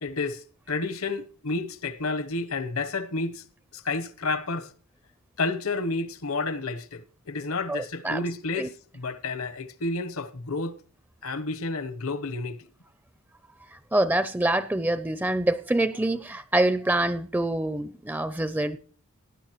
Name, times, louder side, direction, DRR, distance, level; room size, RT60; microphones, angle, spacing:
voice 1, 0.0-3.4 3.7-4.7 5.4-10.8 11.2-12.7, left 3 dB, 70° left, 1.0 m, -30 dB
voice 2, 7.7-8.2 8.6-8.7 13.9-18.8, right 1 dB, 10° right, 0.5 m, -25 dB
18.0 x 10.5 x 3.0 m
head